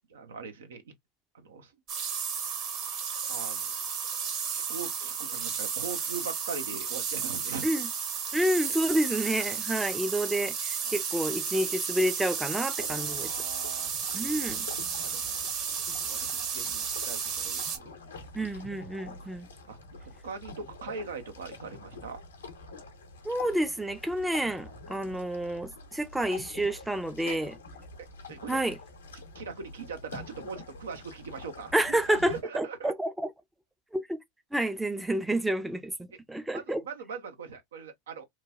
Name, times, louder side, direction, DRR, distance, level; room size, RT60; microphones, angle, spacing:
voice 1, 0.1-1.0 1.3-1.7 3.3-3.7 4.0-4.1 4.5-7.7 10.8-11.0 13.0-14.6 14.9-15.5 16.0-18.0 19.0-19.3 19.7-22.2 24.9-25.1 27.2-27.4 28.0-28.6 29.3-32.9 36.5-38.3, right 5 dB, 75° right, 0.7 m, -41 dB
sound 1, 1.9-17.8, right 7 dB, 45° right, 1.2 m, -33 dB
voice 2, 8.3-13.3 14.1-14.7 18.3-19.5 23.2-27.5 28.5-28.8 31.7-33.3 33.9-34.2 34.5-36.8, right 1 dB, 5° right, 0.5 m, -29 dB
sound 2, 12.8-32.4, left 3 dB, 80° left, 0.9 m, -47 dB
3.1 x 2.2 x 2.2 m
hypercardioid pair, 90°, 0 cm